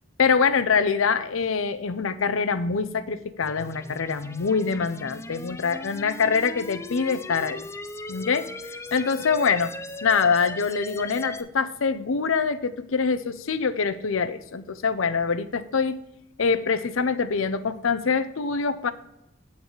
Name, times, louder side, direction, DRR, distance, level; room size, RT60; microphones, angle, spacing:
voice 1, 0.2-7.7 8.1-8.5 8.9-9.7 10.0-16.0 16.4-18.9, left 5 dB, 75° left, 12 dB, 0.6 m, -24 dB
sound 1, 3.4-11.4, left 2 dB, 15° left, 0.4 m, -38 dB
8.7 x 4.0 x 6.2 m, 0.83 s
head